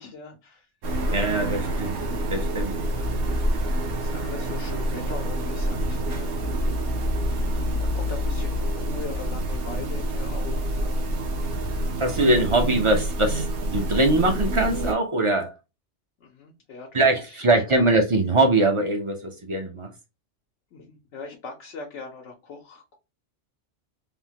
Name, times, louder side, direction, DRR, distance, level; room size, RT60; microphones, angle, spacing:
voice 1, 0.0-1.8 2.8-3.4 4.0-6.5 7.8-11.0 16.2-17.4 20.7-23.0, left 4 dB, 85° left, 1.0 m, -41 dB
sound 1, 0.8-14.9, right 1 dB, 60° right, 0.8 m, -27 dB
voice 2, 1.1-2.0 2.3-2.8 12.0-15.5 16.9-19.9, right 2 dB, 40° right, 0.4 m, -22 dB
3.4 x 2.1 x 2.8 m
omnidirectional pair, 1.2 m